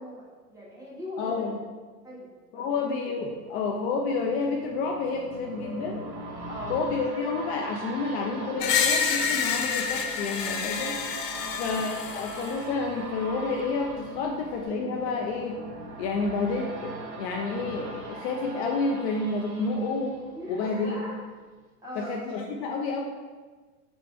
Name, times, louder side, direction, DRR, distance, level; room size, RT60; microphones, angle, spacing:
voice 1, 0.0-1.5 2.0-2.8 6.5-6.8 11.3-11.6 20.3-21.2 21.8-22.1, equal, 5° right, -7 dB, 1.2 m, -40 dB
voice 2, 1.2-1.6 2.5-6.0 6.7-11.0 11.6-15.6 16.0-20.2 20.5-21.0 22.0-23.0, left 4 dB, 45° left, 1 dB, 0.5 m, -29 dB
sound 1, 3.0-4.6 5.4-7.2 8.2-10.0 11.6-13.5 14.7-15.3, left 2 dB, 70° left, 1.1 m, -47 dB
sound 2, 3.2-21.0 21.4-21.5, right 2 dB, 30° right, 0.6 m, -42 dB
Screech, 8.6-12.6, left 6 dB, 90° left, 0.6 m, -28 dB
4.4 x 2.2 x 4.2 m, 1.3 s
hypercardioid pair, 105°, 47 cm